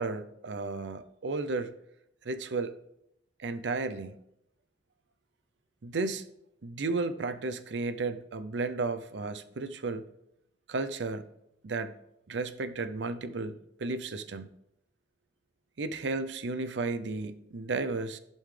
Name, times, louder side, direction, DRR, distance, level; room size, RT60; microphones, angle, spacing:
voice 1, 0.0-1.7 2.2-2.7 3.4-4.2 5.8-6.2 6.6-10.1 10.7-11.3 11.6-11.9 12.3-14.5 15.8-18.2, right 3 dB, 80° right, 11 dB, 0.6 m, -33 dB
15.0 x 5.4 x 3.3 m, 0.81 s
head